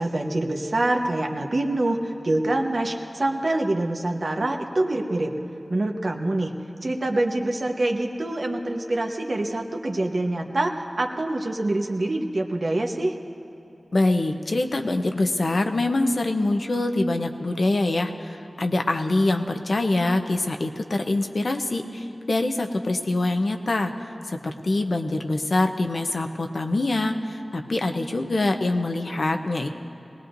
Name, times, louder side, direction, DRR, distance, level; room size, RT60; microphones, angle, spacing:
voice 1, 0.0-5.3 5.7-6.5 6.8-13.1, right 2 dB, 65° right, 2 dB, 1.1 m, -25 dB
voice 2, 13.9-18.1 18.6-23.9 24.3-29.7, left 2 dB, 70° left, 5 dB, 0.8 m, -24 dB
20.5 x 18.5 x 2.6 m, 2.9 s
wide cardioid pair, 45°, 0 cm